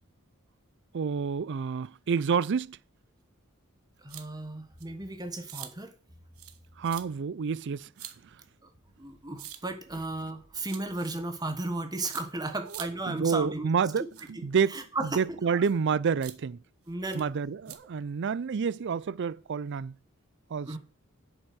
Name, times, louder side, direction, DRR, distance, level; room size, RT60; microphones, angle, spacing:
voice 1, 0.9-2.8 6.8-7.9 13.1-14.8 15.2-16.6 17.1-20.0 20.5-20.8, right 6 dB, 55° right, 0.4 m, -28 dB
voice 2, 4.0-5.9 9.0-13.7 14.3-14.4 14.7-15.2 15.5-15.6 16.9-17.3 20.7-20.8, right 2 dB, 20° right, 1.3 m, -35 dB
sound 1, 4.1-4.3 4.8-4.9 5.5-5.7 6.4-6.6 6.8-7.0 8.0-8.1 9.4-9.6 10.6-11.1 12.1-12.2 12.7-12.9 14.1-14.3 14.7-14.8 15.6-15.8 16.2-16.3 17.1-17.2 17.7-17.8, right 12 dB, 85° right, 1.2 m, -43 dB
8.1 x 6.9 x 6.2 m
head